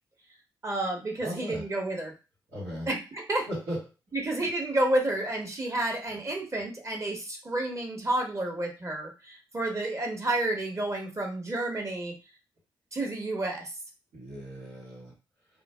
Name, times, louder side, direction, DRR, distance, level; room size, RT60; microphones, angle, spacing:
voice 1, 0.6-2.1 2.9-3.5 4.1-12.2 12.9-13.7, right 1 dB, 30° right, 1 dB, 1.1 m, -30 dB
voice 2, 1.2-1.7 2.5-2.9 3.5-3.8 4.4-4.5 14.1-15.1, equal, 90° right, -10 dB, 1.3 m, -37 dB
2.5 x 2.0 x 3.2 m, 0.30 s
supercardioid pair, 45°, 9 cm